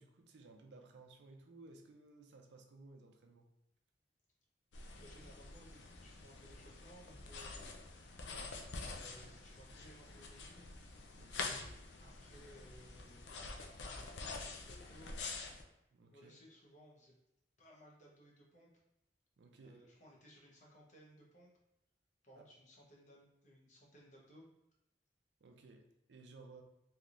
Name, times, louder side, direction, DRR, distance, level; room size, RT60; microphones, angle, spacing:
voice 1, 0.0-3.5 11.2-11.7 15.9-16.3 19.4-19.8 22.4-22.5 25.4-26.6, right 3 dB, 70° right, 3 dB, 0.5 m, -58 dB
sound 1, 4.7-15.6, left 3 dB, 75° left, 0.4 m, -47 dB
voice 2, 5.0-7.7 8.9-10.8 12.0-15.2 16.1-17.1 17.6-18.7 19.6-21.5 22.2-24.5, equal, 45° left, -3 dB, 0.8 m, -61 dB
3.3 x 2.7 x 2.5 m, 0.86 s
head